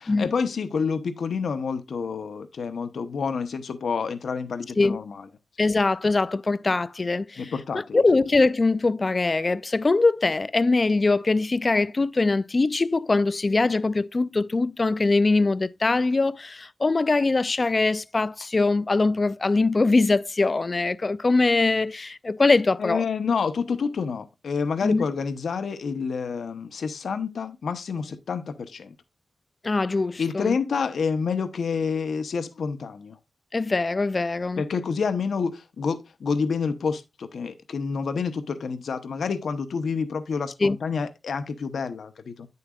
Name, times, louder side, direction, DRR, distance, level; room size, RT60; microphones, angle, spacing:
voice 1, 0.0-5.2 7.4-8.0 22.8-28.9 30.2-33.2 34.6-42.5, left 5 dB, 80° left, 0.8 m, -28 dB
voice 2, 5.6-23.0 24.8-25.0 29.6-30.6 33.5-34.6 40.6-40.8, left 3 dB, 30° left, 0.4 m, -22 dB
9.5 x 6.7 x 2.4 m
wide cardioid pair, 155°, 0 cm